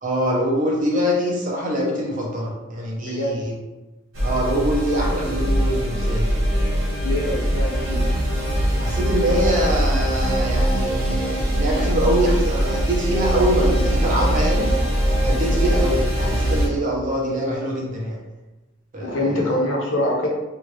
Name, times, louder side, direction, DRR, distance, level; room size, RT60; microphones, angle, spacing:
voice 1, 0.0-3.6 4.2-6.3 8.8-14.7 15.2-18.2 18.9-19.5, equal, 40° right, -3 dB, 0.8 m, -24 dB
sound 1, 4.1-16.7, equal, 85° right, 0.8 m, -21 dB
voice 2, 7.0-8.1 15.4-15.6 19.0-20.3, left 1 dB, 70° left, -1 dB, 0.7 m, -24 dB
2.7 x 2.5 x 3.1 m, 1.1 s
head